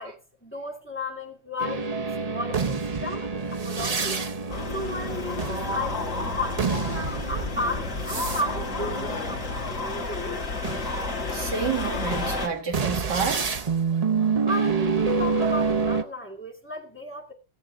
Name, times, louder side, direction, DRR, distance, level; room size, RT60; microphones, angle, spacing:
voice 1, 0.0-1.9 2.2-4.2 4.7-10.4 14.4-17.3, left 1 dB, 5° left, 2.3 m, -34 dB
sound 1, 1.6-10.1 10.6-16.0, right 5 dB, 45° right, 0.5 m, -28 dB
sound 2, 4.5-12.5, left 3 dB, 45° left, 2.6 m, -31 dB
voice 2, 11.3-13.7, right 6 dB, 75° right, 2.3 m, -29 dB
17.5 x 7.7 x 3.9 m
omnidirectional pair, 1.8 m